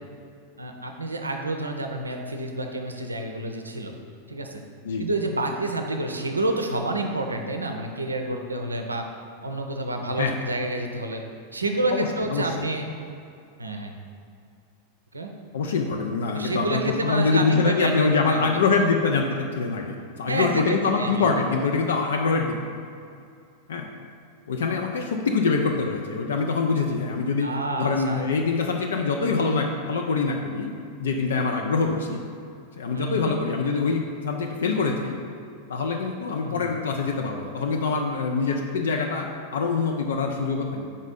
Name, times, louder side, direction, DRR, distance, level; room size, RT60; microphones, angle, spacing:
voice 1, 0.6-3.9 4.3-4.6 5.0-9.1 9.4-11.2 11.5-12.9 13.6-13.9 15.1-15.3 16.3-18.4 20.3-21.3 27.4-28.2 32.9-33.4 36.4-36.7, right 2 dB, 80° right, 4 dB, 0.5 m, -29 dB
voice 2, 11.9-12.7 15.5-22.6 23.7-23.9 24.5-27.5 27.8-30.7 31.0-32.2 32.8-35.2 35.7-40.9, left 4 dB, 65° left, 2 dB, 0.4 m, -24 dB
5.4 x 4.1 x 5.0 m, 2.4 s
figure-of-eight pair, 90°, 0 cm